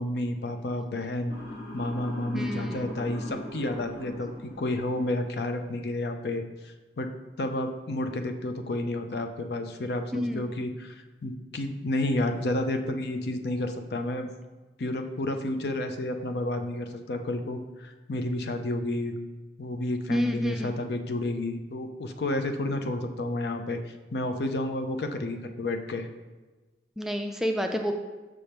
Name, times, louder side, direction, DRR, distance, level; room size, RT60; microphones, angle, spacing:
voice 1, 0.0-1.4 1.7-7.1 7.4-14.3 14.8-19.1 19.6-26.1, left 1 dB, 65° left, 7 dB, 0.5 m, -31 dB
Motor vehicle (road) / Siren, 1.3-5.4, left 1 dB, 50° left, 1.7 m, -41 dB
voice 2, 2.3-2.8 10.1-10.5 20.1-20.7 27.0-27.9, equal, ahead, 4 dB, 0.3 m, -29 dB
6.2 x 3.4 x 5.7 m, 1.2 s
head